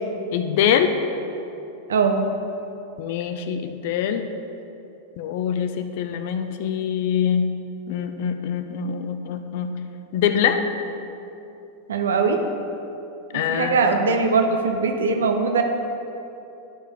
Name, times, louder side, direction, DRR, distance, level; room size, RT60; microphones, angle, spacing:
voice 1, 0.3-1.0 3.0-4.3 5.2-7.5 7.9-9.8 10.1-10.6 13.3-14.0, left 8 dB, 50° left, 8 dB, 0.5 m, -24 dB
voice 2, 1.9-2.3 11.9-12.4 13.5-15.6, right 4 dB, 65° right, 5 dB, 0.7 m, -21 dB
11.0 x 5.1 x 3.4 m, 2.8 s
figure-of-eight pair, 90°, 0 cm